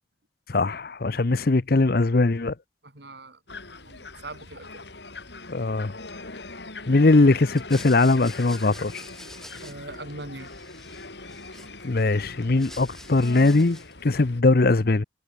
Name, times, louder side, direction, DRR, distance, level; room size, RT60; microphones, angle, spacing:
voice 1, 0.5-2.5 5.5-5.9 6.9-9.0 11.8-15.0, left 3 dB, 55° left, 0.7 m, -20 dB
voice 2, 2.8-3.4 3.8-4.9 9.6-10.5, right 2 dB, 65° right, 3.4 m, -41 dB
sound 1, 3.5-14.4, left 3 dB, 70° left, 5.6 m, -42 dB
sound 2, 7.5-10.1 10.4-12.0 12.4-14.0, left 1 dB, ahead, 3.0 m, -46 dB
head